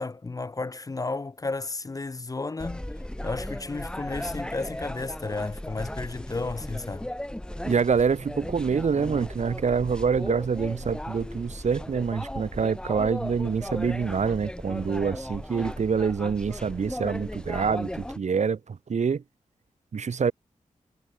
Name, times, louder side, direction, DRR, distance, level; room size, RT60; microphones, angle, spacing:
voice 1, 0.0-2.9 3.2-7.1, left 3 dB, 25° left, 0.4 m, -33 dB
sound 1, 2.6-18.2, left 1 dB, 5° left, 0.8 m, -36 dB
voice 2, 7.6-19.2 19.9-20.3, right 6 dB, 60° right, 1.0 m, -26 dB
cardioid pair, 60°, 14 cm